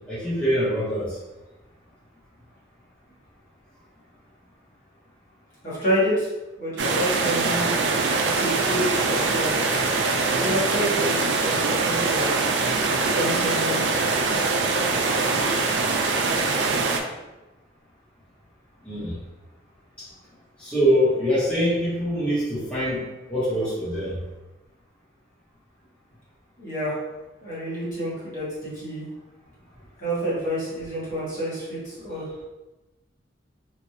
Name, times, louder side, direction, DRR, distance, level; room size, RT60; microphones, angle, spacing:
voice 1, 0.1-1.1 18.8-19.1 20.0-20.1 20.6-23.0 23.3-24.2, equal, 5° left, -12 dB, 1.0 m, -24 dB
voice 2, 5.6-6.3 6.6-7.6 8.3-9.6 10.2-12.3 13.1-13.8 26.6-27.0 27.4-29.1 30.0-32.3, equal, 40° left, -9 dB, 1.2 m, -28 dB
sound 1, 6.8-17.0, right 3 dB, 70° right, 0.4 m, -23 dB
3.1 x 2.5 x 2.7 m, 1.1 s
head